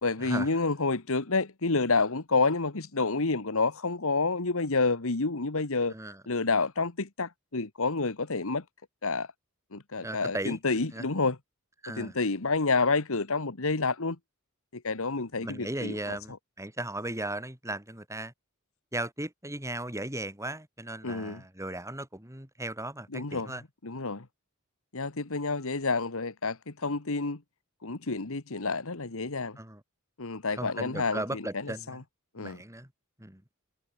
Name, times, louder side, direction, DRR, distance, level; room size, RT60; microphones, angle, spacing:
voice 1, 0.0-5.9 6.3-8.6 9.0-9.3 9.7-11.4 11.9-14.2 14.7-16.2 21.0-21.4 23.1-23.6 23.8-24.3 24.9-27.4 27.8-29.6 30.2-32.0 32.3-32.6, left 3 dB, 70° left, 1.6 m, -29 dB
voice 2, 10.0-10.6 10.9-11.1 11.8-12.1 15.4-18.3 18.9-23.6 29.6-29.8 30.6-32.0 32.4-32.9 33.2-33.4, right 1 dB, 15° right, 5.5 m, -36 dB
head